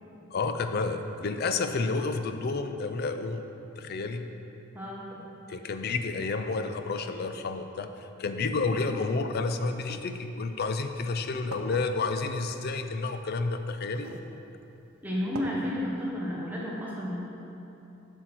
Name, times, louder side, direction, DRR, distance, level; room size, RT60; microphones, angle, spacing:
voice 1, 0.3-3.4 3.8-4.3 5.5-14.1, left 3 dB, 50° left, 8 dB, 0.4 m, -30 dB
voice 2, 4.7-5.3 15.0-17.2, left 1 dB, 10° right, -5 dB, 1.0 m, -32 dB
sound 1, 9.8-10.0 10.9-11.0 11.5-11.8 13.1-13.2 13.9-14.3 14.7-14.8 15.3-15.5, right 3 dB, 90° right, 0.6 m, -41 dB
8.0 x 6.4 x 4.4 m, 2.9 s
head